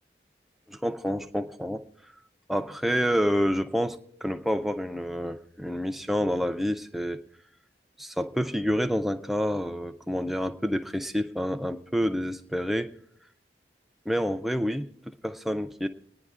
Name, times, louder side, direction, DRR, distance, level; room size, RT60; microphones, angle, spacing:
voice 1, 0.7-1.8 2.5-7.2 8.0-12.9 14.1-15.9, equal, ahead, 7 dB, 0.4 m, -28 dB
30.0 x 10.0 x 2.4 m, 0.69 s
head